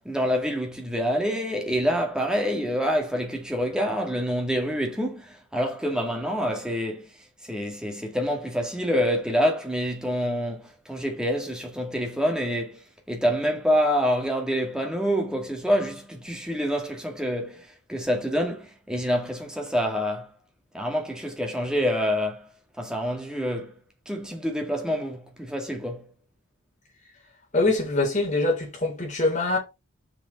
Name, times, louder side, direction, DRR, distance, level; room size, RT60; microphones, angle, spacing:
voice 1, 0.0-20.3 20.7-22.5 22.8-23.8 24.1-26.1, equal, 5° right, 2.0 m, -27 dB
voice 2, 27.5-29.6, left 2 dB, 35° left, 4.0 m, -24 dB
6.9 x 5.0 x 5.8 m
head